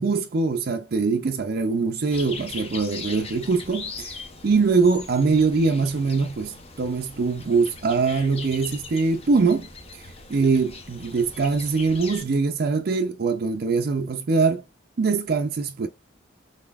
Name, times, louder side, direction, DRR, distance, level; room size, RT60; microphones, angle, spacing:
voice 1, 0.0-10.0 10.3-14.6 15.0-15.9, right 4 dB, 50° right, 0.4 m, -23 dB
sound 1, 2.1-12.2, left 4 dB, 30° left, 0.6 m, -40 dB
4.0 x 3.4 x 2.3 m
head